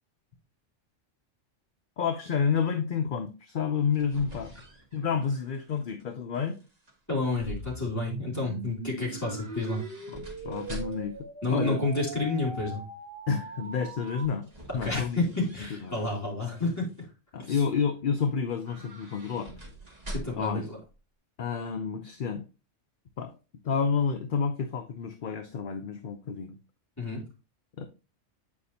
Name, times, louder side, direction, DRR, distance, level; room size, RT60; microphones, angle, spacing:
voice 1, 2.0-4.5 4.9-6.6 10.1-11.2 11.5-11.8 13.3-14.5 14.7-15.2 15.8-15.9 17.3-19.5 20.3-20.7 21.4-22.4 23.2-23.3 23.6-26.6 27.8-27.9, left 6 dB, 55° left, 0.7 m, -29 dB
sound 1, 3.6-6.0 6.3-6.9 9.1-11.2 14.0-16.1 16.6-17.0 18.5-20.6 20.9-21.0, right 1 dB, 30° right, 1.8 m, -45 dB
voice 2, 7.1-9.8 11.4-12.8 14.7-17.1 17.4-17.6 20.1-20.8 27.0-27.2, left 2 dB, 15° left, 2.9 m, -30 dB
sound 2, 7.4-14.3, right 3 dB, 55° right, 1.1 m, -40 dB
8.6 x 5.0 x 2.7 m
omnidirectional pair, 1.3 m